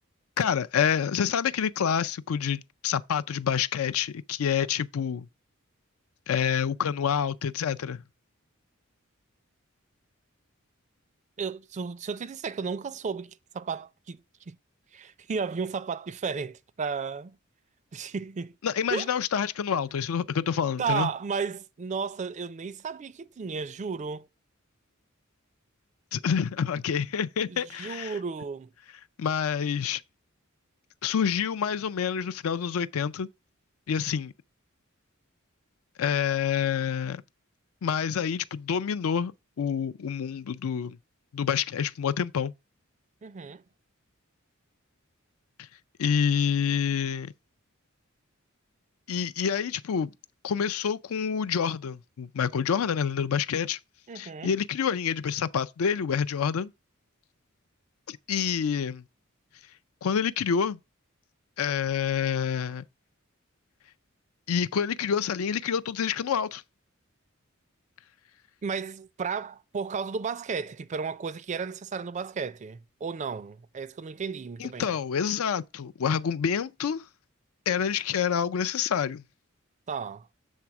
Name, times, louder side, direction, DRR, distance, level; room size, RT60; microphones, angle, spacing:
voice 1, 0.4-5.3 6.3-8.0 18.6-21.1 26.1-28.1 29.2-30.0 31.0-33.3 33.9-34.3 36.0-37.2 37.8-39.3 39.6-41.0 41.3-42.5 46.0-47.3 49.1-50.1 50.4-53.8 54.2-56.7 58.1-59.0 60.0-60.8 61.6-62.8 64.5-66.6 74.6-77.0 77.7-79.2, left 7 dB, 80° left, 0.4 m, -27 dB
voice 2, 11.4-14.6 14.9-17.4 17.9-18.6 18.9-19.1 20.8-24.3 27.5-28.7 43.2-43.6 54.1-54.5 68.6-75.0 79.9-80.3, right 5 dB, 35° right, 0.4 m, -33 dB
7.4 x 3.4 x 5.8 m
head